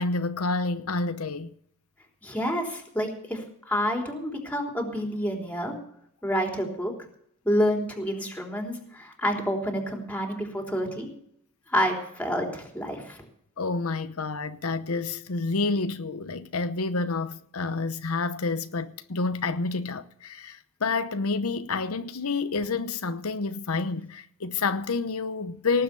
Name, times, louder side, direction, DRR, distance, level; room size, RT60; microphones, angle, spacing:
voice 1, 0.0-1.5 13.6-25.8, left 3 dB, 85° left, 0.9 m, -29 dB
voice 2, 2.2-5.7 6.2-6.9 7.4-11.1 11.7-13.2, equal, 5° left, 3.7 m, -28 dB
18.5 x 8.0 x 7.0 m
head